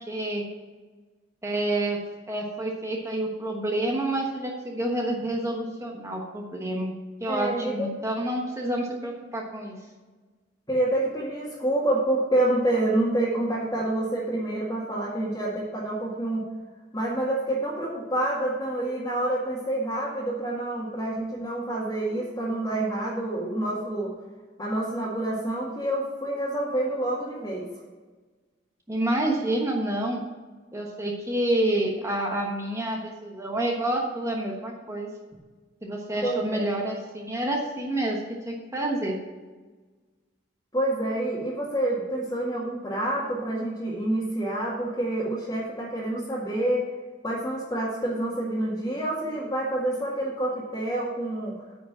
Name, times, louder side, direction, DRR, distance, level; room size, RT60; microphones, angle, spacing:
voice 1, 0.1-0.5 1.4-2.0 2.3-6.9 7.2-9.8 28.9-30.2 30.7-35.1 35.8-39.2, right 1 dB, 15° right, 0 dB, 1.1 m, -28 dB
voice 2, 7.3-7.9 10.7-16.4 16.9-24.1 24.6-27.7 36.2-36.7 40.7-46.9 47.2-51.5, right 1 dB, 20° left, -7 dB, 1.9 m, -27 dB
9.3 x 5.0 x 7.3 m, 1.3 s
head